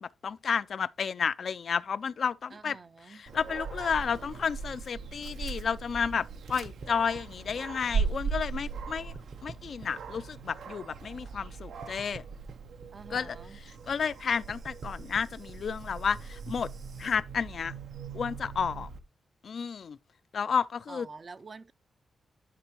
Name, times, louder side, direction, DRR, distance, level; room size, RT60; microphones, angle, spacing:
voice 1, 0.0-2.8 3.1-9.1 9.4-12.2 13.1-13.4 13.9-16.7 17.0-17.7 18.1-18.9 19.4-20.0 20.3-21.1, left 6 dB, 65° left, 0.3 m, -31 dB
voice 2, 2.5-3.2 12.9-13.6 20.9-21.7, right 4 dB, 45° right, 0.5 m, -47 dB
Dog, 3.3-19.0, right 5 dB, 85° right, 0.7 m, -39 dB
sound 1, 6.5-8.8 9.1-11.5 11.8-17.2, right 5 dB, 65° right, 1.1 m, -50 dB
11.0 x 4.4 x 3.0 m
cardioid pair, 80°, 0 cm